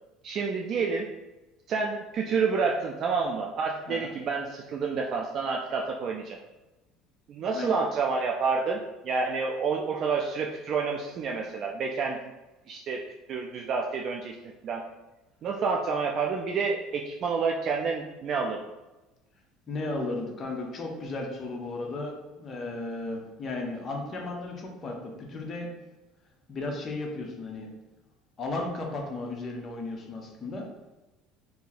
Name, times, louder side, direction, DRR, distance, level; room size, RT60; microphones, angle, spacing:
voice 1, 0.2-1.1 1.7-6.4 7.3-12.3 12.7-13.0 13.3-14.4 14.6-14.8 15.4-18.6, right 5 dB, 45° right, 1 dB, 0.3 m, -29 dB
voice 2, 19.7-25.7 26.5-27.7 28.4-30.7, left 2 dB, 30° left, 0 dB, 0.7 m, -35 dB
2.8 x 2.6 x 3.9 m, 1.1 s
cardioid pair, 125°, 0 cm